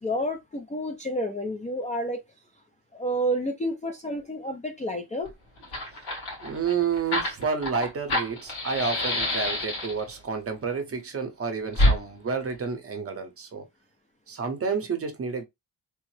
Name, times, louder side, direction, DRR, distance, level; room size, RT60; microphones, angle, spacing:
voice 1, 0.0-2.2 2.9-5.3, equal, 20° left, 0.4 m, -30 dB
Fire, 5.2-5.3 5.6-10.1 11.7-12.0, left 1 dB, 80° left, 1.8 m, -26 dB
voice 2, 6.4-13.6 14.3-15.4, right 5 dB, 35° right, 0.7 m, -30 dB
3.4 x 2.0 x 3.1 m
wide cardioid pair, 150°, 43 cm